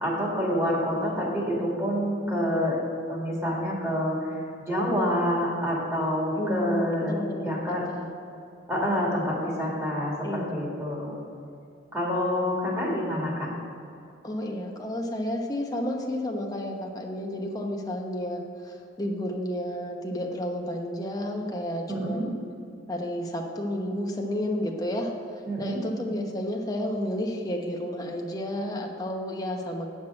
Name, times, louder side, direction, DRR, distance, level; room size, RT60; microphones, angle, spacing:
voice 1, 0.0-2.8 3.1-4.2 4.7-7.1 7.4-7.8 8.7-11.2 11.9-13.5 21.9-22.2 25.5-25.8, equal, 15° right, -4 dB, 2.5 m, -27 dB
voice 2, 6.4-8.1 10.2-10.6 14.2-22.4 22.9-29.9, left 1 dB, 20° left, 1 dB, 1.0 m, -31 dB
9.3 x 6.1 x 6.3 m, 2.6 s
head